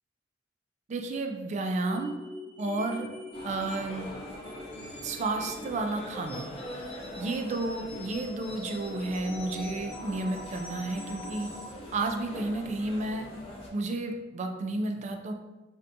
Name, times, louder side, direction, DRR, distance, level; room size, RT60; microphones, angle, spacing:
voice 1, 0.9-2.2 2.6-3.1 3.4-4.1 5.0-6.5 7.2-11.5 11.9-13.3 13.7-15.3, right 2 dB, 40° right, 4 dB, 0.3 m, -32 dB
sound 1, 1.8-11.7, left 1 dB, 10° left, 0.9 m, -43 dB
sound 2, 3.3-13.7, left 1 dB, 30° left, 0.6 m, -43 dB
3.3 x 2.7 x 2.6 m, 1.1 s
head